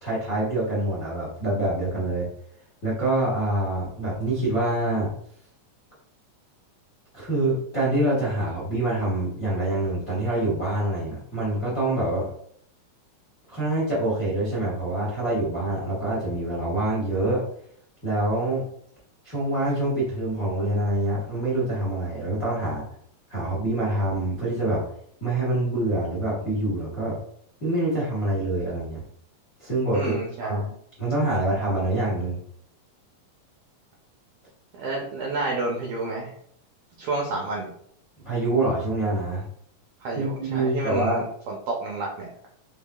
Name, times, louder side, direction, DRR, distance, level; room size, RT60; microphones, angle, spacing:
voice 1, 0.0-2.3 2.8-5.1 7.1-12.3 13.5-17.4 18.0-18.6 19.2-22.8 23.3-24.8 25.2-27.2 27.6-29.0 29.6-30.1 30.4-30.6 31.0-32.4 38.2-39.4 40.1-41.2, right 2 dB, 45° left, -5 dB, 1.0 m, -25 dB
voice 2, 29.9-30.7 34.8-36.3 37.0-37.7 40.0-42.3, right 3 dB, 85° right, -2 dB, 1.5 m, -30 dB
5.6 x 3.5 x 2.3 m, 0.65 s
omnidirectional pair, 4.0 m